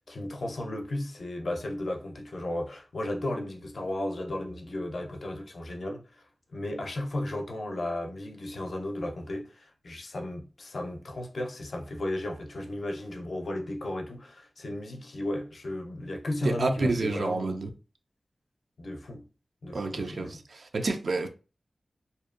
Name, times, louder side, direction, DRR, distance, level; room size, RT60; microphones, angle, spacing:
voice 1, 0.1-6.0 6.5-17.5 18.8-19.2 19.6-20.4, left 1 dB, 70° left, 0.5 m, -34 dB
voice 2, 16.4-17.7 19.7-21.3, right 3 dB, 80° right, 0.4 m, -29 dB
2.6 x 2.1 x 2.4 m
wide cardioid pair, 100°, 0 cm